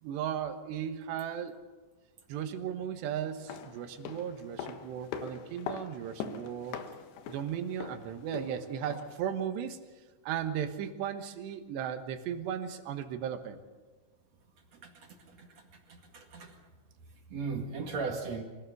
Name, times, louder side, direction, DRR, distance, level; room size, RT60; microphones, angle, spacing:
voice 1, 0.0-1.6 2.3-6.8 7.3-9.8 10.2-13.6, right 9 dB, 85° right, 8 dB, 3.5 m, -36 dB
sound 1, 3.3-9.3 9.6-9.7, left 7 dB, 80° left, 3.4 m, -43 dB
voice 2, 14.7-15.5 15.9-16.6 17.3-18.4, right 4 dB, 50° right, 3 dB, 2.7 m, -37 dB
24.5 x 17.5 x 6.8 m, 1.3 s
omnidirectional pair, 4.9 m